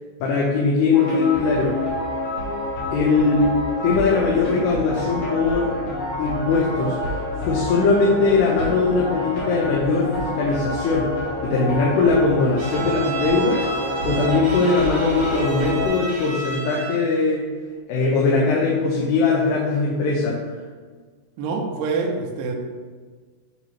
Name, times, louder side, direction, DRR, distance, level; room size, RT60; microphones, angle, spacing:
voice 1, 0.2-1.8 2.9-5.7 6.2-7.2 7.4-17.5 17.9-20.4, left 4 dB, 80° left, -4 dB, 2.9 m, -20 dB
sound 1, 0.9-15.9, left 1 dB, 50° left, 1.9 m, -28 dB
Bowed string instrument, 12.6-17.1, right 3 dB, 50° right, 1.5 m, -32 dB
voice 2, 21.4-22.5, right 4 dB, 75° right, 1 dB, 2.5 m, -25 dB
8.4 x 3.1 x 5.7 m, 1.5 s
omnidirectional pair, 4.8 m